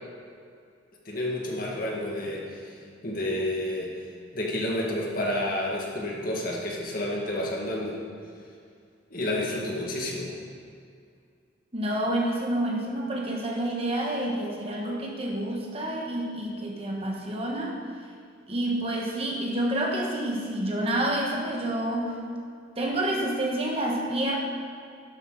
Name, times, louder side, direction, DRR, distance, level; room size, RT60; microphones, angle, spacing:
voice 1, 1.1-3.9 4.3-8.0 9.1-10.3, left 1 dB, 45° left, -3 dB, 2.1 m, -30 dB
voice 2, 11.7-17.8 18.5-22.1 22.8-24.4, right 1 dB, 30° right, -1 dB, 1.4 m, -28 dB
12.0 x 12.0 x 4.1 m, 2.3 s
head